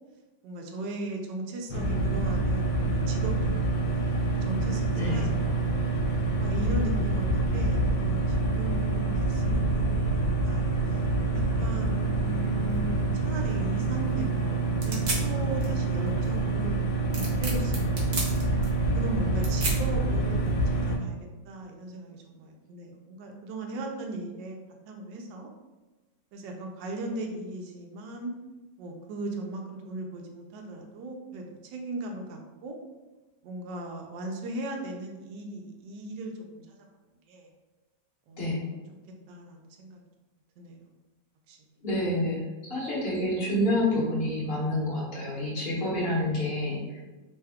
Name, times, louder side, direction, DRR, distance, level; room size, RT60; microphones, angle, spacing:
voice 1, 0.4-4.1 4.4-5.8 6.4-11.0 11.3-16.8 17.1-18.2 18.9-21.2 21.4-24.6 24.9-25.5 26.3-28.3 28.8-32.8 33.4-36.7 37.3-37.5 38.3-38.8 39.3-40.0 40.6-40.9 41.5-41.6 42.5-42.8, right 2 dB, 85° right, 2 dB, 1.2 m, -38 dB
sound 1, 1.7-21.0, right 2 dB, 75° left, 1.2 m, -26 dB
sound 2, 12.7-20.8, right 3 dB, 65° right, 0.4 m, -37 dB
voice 2, 41.8-42.4 42.7-47.0, left 1 dB, 40° left, -6 dB, 1.1 m, -28 dB
3.4 x 2.2 x 3.4 m, 1.2 s
omnidirectional pair, 1.9 m